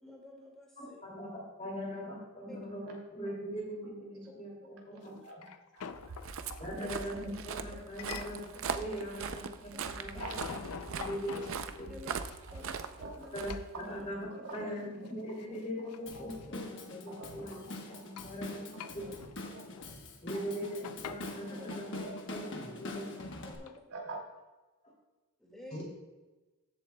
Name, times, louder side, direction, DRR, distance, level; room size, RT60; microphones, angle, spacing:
voice 1, 0.0-1.0 2.5-2.6 4.9-5.0 6.8-6.9 8.9-9.0 9.7-9.9 11.9-12.1 12.5-12.8 13.2-13.3 21.5-21.7 23.4-23.8 25.4-25.8, left 1 dB, ahead, -2 dB, 2.0 m, -50 dB
voice 2, 0.8-5.1 6.6-8.4 8.7-10.2 10.9-12.1 13.3-13.5 13.8-19.1 20.2-22.0 22.3-23.1 25.7-25.8, equal, 30° left, -2 dB, 2.6 m, -41 dB
voice 3, 5.0-5.4 5.7-6.2 6.6-7.2 8.8-8.9 10.2-10.6 13.0-13.2 13.8-14.0 14.3-14.7 15.8-16.6 17.1-18.3 18.7-19.1 20.3-20.8 21.2-22.2 23.6-24.2 25.7-25.8, right 3 dB, 90° right, -1 dB, 2.6 m, -48 dB
sound 1, 5.1-6.6 8.0-8.6 8.9-9.7 9.9-13.1 13.5-13.7 14.2-14.8 15.0-15.1 15.4-16.5 16.9-18.4 18.7-19.9 20.2-21.5 22.2-22.3 23.7-23.8, left 7 dB, 85° left, 0.5 m, -46 dB
Walk footsteps, 5.9-14.2, right 5 dB, 65° right, 0.5 m, -41 dB
Drum kit / Drum, 16.1-23.6, left 2 dB, 55° left, 1.1 m, -44 dB
14.0 x 7.7 x 2.3 m, 1.2 s
head